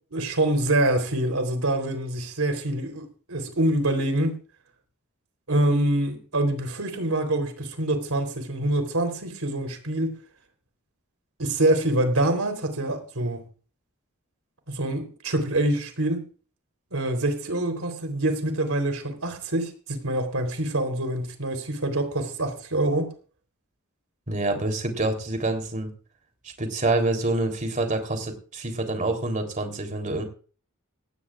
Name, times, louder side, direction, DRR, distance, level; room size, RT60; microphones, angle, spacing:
voice 1, 0.1-4.3 5.5-10.1 11.4-13.4 14.7-16.2 16.9-23.1, right 1 dB, 75° right, 3.7 m, -25 dB
voice 2, 24.3-25.9 26.4-30.2, right 2 dB, 35° right, 3.5 m, -27 dB
18.5 x 16.5 x 2.5 m
head